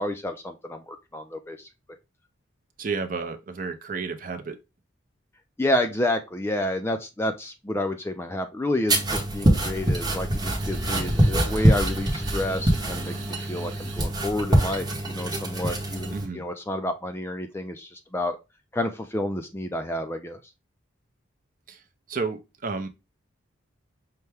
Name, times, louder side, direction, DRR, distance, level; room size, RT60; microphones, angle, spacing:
voice 1, 0.0-1.7 5.6-18.4 18.7-20.4, left 1 dB, 10° left, 0.3 m, -30 dB
voice 2, 2.8-4.6 16.1-16.4 21.7-21.8 22.1-22.9, right 4 dB, 40° right, 0.5 m, -31 dB
sound 1, 8.9-16.3, right 1 dB, 20° right, 0.9 m, -24 dB
sound 2, 10.6-14.2, right 1 dB, 70° right, 0.8 m, -38 dB
5.6 x 2.2 x 3.3 m
head